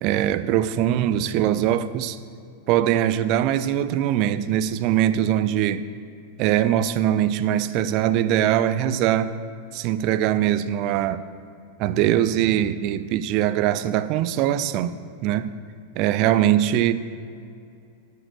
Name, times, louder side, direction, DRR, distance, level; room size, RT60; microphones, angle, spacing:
voice 1, 0.0-2.2 2.7-5.9 6.4-9.3 9.7-11.2 11.8-14.9 15.2-15.5 16.0-16.9, right 11 dB, 40° right, 13 dB, 0.5 m, -22 dB
11.5 x 4.8 x 7.8 m, 2.5 s
figure-of-eight pair, 90°, 0 cm